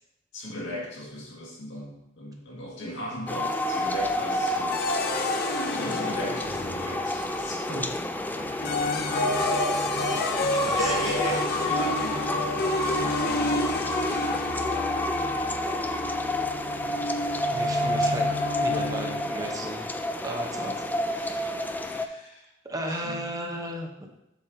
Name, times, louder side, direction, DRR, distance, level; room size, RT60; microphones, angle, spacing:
voice 1, 0.3-4.9 5.8-7.9 9.8-10.2 10.8-12.3 13.0-13.5 16.8-16.9 21.8-22.5 22.9-23.2, equal, 75° left, -2 dB, 1.9 m, -37 dB
sound 1, 3.3-22.1, left 1 dB, 10° left, 0.3 m, -29 dB
sound 2, 4.7-7.3 8.4-19.5, left 2 dB, 55° left, 0.6 m, -31 dB
voice 2, 10.3-11.2 17.5-18.3 18.6-19.9 20.2-21.9 22.6-23.9, right 1 dB, 20° right, 2 dB, 0.9 m, -35 dB
7.6 x 6.1 x 2.8 m, 0.88 s
head